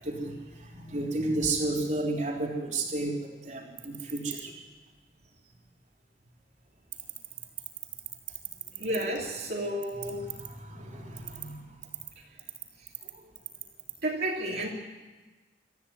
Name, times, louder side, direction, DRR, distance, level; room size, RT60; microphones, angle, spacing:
voice 1, 0.0-4.5 8.8-8.9 10.0-11.8 13.1-13.3, right 2 dB, 40° right, 0 dB, 3.8 m, -33 dB
voice 2, 8.8-10.3 14.0-14.7, right 1 dB, 55° right, -4 dB, 3.2 m, -31 dB
25.5 x 14.5 x 9.7 m, 1.2 s
head